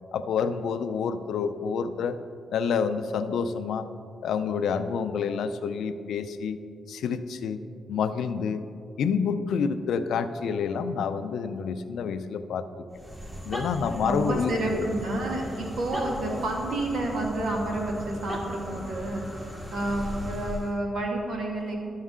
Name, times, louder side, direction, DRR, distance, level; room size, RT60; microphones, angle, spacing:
voice 1, 0.1-2.2 2.5-3.9 4.2-6.6 6.9-7.6 7.9-8.6 9.0-12.9 13.5-14.9, left 6 dB, 85° left, 10 dB, 0.4 m, -28 dB
sound 1, 12.9-20.8, equal, 15° right, 1.5 m, -37 dB
voice 2, 14.0-21.7, right 1 dB, 80° right, 0 dB, 1.7 m, -30 dB
12.0 x 6.4 x 3.7 m, 2.5 s
cardioid pair, 85°, 0 cm